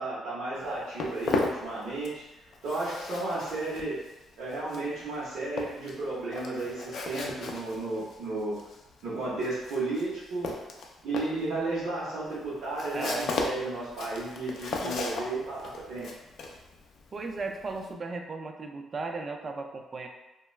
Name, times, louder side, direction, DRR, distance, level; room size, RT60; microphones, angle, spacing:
voice 1, 0.0-4.0 4.4-8.6 9.0-10.5 11.0-16.1, right 2 dB, 75° right, -10 dB, 0.8 m, -33 dB
Walk footsteps, 0.5-2.3 2.5-17.9, left 4 dB, 65° left, 0.4 m, -36 dB
voice 2, 12.9-13.3 14.8-15.0 17.1-20.1, right 3 dB, 40° right, 4 dB, 0.3 m, -36 dB
2.2 x 2.2 x 3.1 m, 1.0 s
cardioid pair, 90°, 0 cm